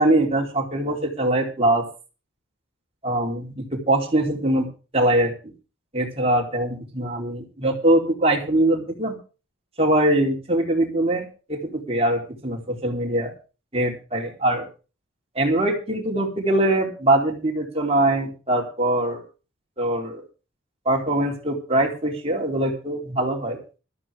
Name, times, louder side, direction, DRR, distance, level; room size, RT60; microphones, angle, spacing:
voice 1, 0.0-1.9 3.0-4.7 4.9-5.5 5.9-9.2 9.8-13.3 13.7-14.7 15.4-19.2 19.8-20.2 20.9-23.6, right 1 dB, 30° right, 0 dB, 4.0 m, -22 dB
15.5 x 13.5 x 3.6 m, 0.33 s
head